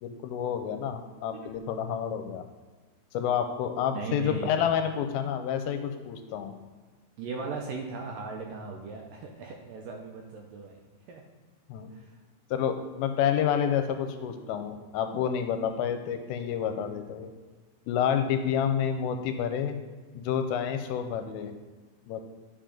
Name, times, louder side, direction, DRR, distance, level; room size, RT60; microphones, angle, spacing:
voice 1, 0.0-2.4 3.1-6.5 11.7-11.9 12.5-17.3 17.9-19.8 20.2-21.5 22.1-22.2, left 8 dB, 85° left, 7 dB, 2.4 m, -29 dB
voice 2, 3.9-4.6 7.2-11.2 11.9-12.1, right 4 dB, 80° right, 1 dB, 2.1 m, -38 dB
10.0 x 4.8 x 3.8 m, 1.3 s
omnidirectional pair, 4.5 m